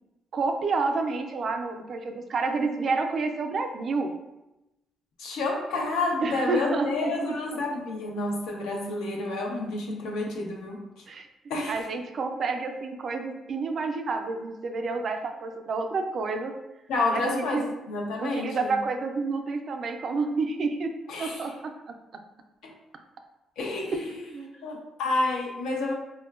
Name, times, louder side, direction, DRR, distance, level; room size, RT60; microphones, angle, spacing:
voice 1, 0.3-4.1 6.2-7.3 7.7-7.8 11.1-11.3 11.7-16.5 17.1-17.7 18.2-20.9 21.2-21.7 23.9-24.5, right 4 dB, 55° right, 5 dB, 0.4 m, -29 dB
voice 2, 5.2-10.8 11.5-11.8 16.9-18.7 21.1-21.4 22.6-22.7 23.6-24.1 24.6-25.9, left 2 dB, 90° left, -1 dB, 0.6 m, -29 dB
4.5 x 2.1 x 2.3 m, 0.97 s
cardioid pair, 90°, 0 cm